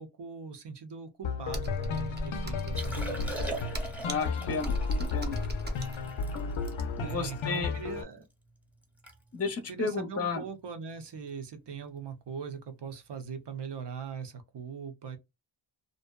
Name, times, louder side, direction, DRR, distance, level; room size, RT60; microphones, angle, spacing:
voice 1, 0.0-3.7 7.0-8.2 9.7-15.2, right 6 dB, 60° right, 0.7 m, -41 dB
sound 1, 1.2-8.0, left 5 dB, 85° left, 0.6 m, -34 dB
Computer keyboard, 1.5-7.1, equal, 25° right, 0.6 m, -36 dB
Liquid, 2.7-8.0 8.5-8.6 8.8-9.2 9.4-9.7 10.3-10.5 12.0-12.1, right 2 dB, 5° right, 0.9 m, -42 dB
voice 2, 4.0-4.8 5.1-5.4 7.0-7.7 9.3-10.4, left 4 dB, 35° left, 0.5 m, -32 dB
2.6 x 2.1 x 2.2 m
wide cardioid pair, 65°, 46 cm